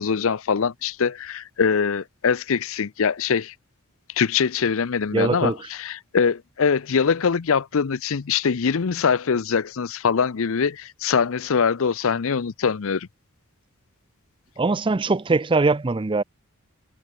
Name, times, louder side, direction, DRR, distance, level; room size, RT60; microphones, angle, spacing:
voice 1, 0.0-3.5 4.1-13.1, left 6 dB, 65° left, 0.6 m, -23 dB
voice 2, 5.1-5.6 14.6-16.2, right 3 dB, 20° right, 0.5 m, -21 dB
head